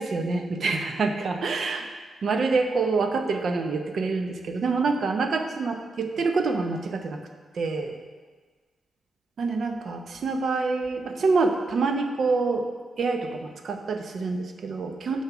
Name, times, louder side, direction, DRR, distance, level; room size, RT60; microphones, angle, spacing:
voice 1, 0.0-1.9 2.2-7.2 7.5-8.0 9.4-12.6 13.0-15.2, right 4 dB, 60° right, 5 dB, 0.7 m, -26 dB
6.8 x 4.4 x 6.0 m, 1.4 s
cardioid pair, 110°, 0 cm